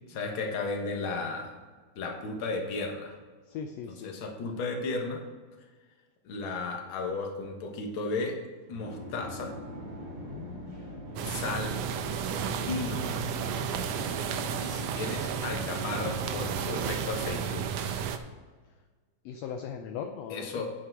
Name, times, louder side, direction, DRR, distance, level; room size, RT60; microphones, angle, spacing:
voice 1, 0.1-1.6 2.0-3.1 4.0-5.2 6.2-8.4 8.7-9.5 11.2-11.8 12.5-13.0 14.6-18.0 20.3-20.7, left 3 dB, 50° left, 2 dB, 1.8 m, -34 dB
voice 2, 3.5-4.1 10.2-11.0 19.3-20.5, left 7 dB, 75° left, 5 dB, 1.7 m, -39 dB
sound 1, 8.7-17.6, equal, 55° right, 3.6 m, -43 dB
sound 2, 11.2-18.2, right 7 dB, 75° right, 1.6 m, -32 dB
8.7 x 7.6 x 4.6 m, 1.4 s
omnidirectional pair, 3.4 m